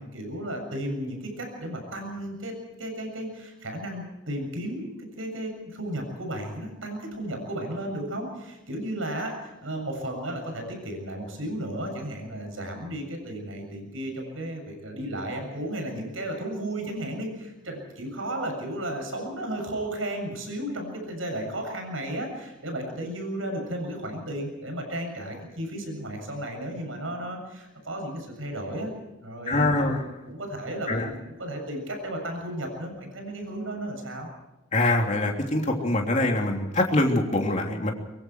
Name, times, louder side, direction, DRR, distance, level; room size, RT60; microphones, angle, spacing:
voice 1, 0.0-2.5 2.8-4.9 5.2-28.9 29.2-34.3, right 1 dB, 85° right, 3 dB, 7.5 m, -34 dB
voice 2, 29.5-30.0 30.9-31.1 34.7-37.9, left 2 dB, 35° left, 1 dB, 3.3 m, -24 dB
24.0 x 23.5 x 4.7 m, 1.1 s
head